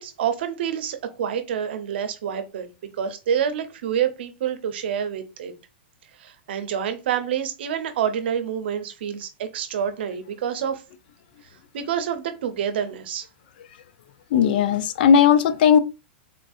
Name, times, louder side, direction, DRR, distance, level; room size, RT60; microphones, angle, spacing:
voice 1, 0.0-2.7 3.0-5.5 6.2-10.8 11.7-13.3, right 8 dB, 70° right, 0.7 m, -27 dB
voice 2, 14.3-15.8, left 7 dB, 55° left, 0.4 m, -17 dB
3.7 x 2.6 x 2.4 m
supercardioid pair, 150°, 6 cm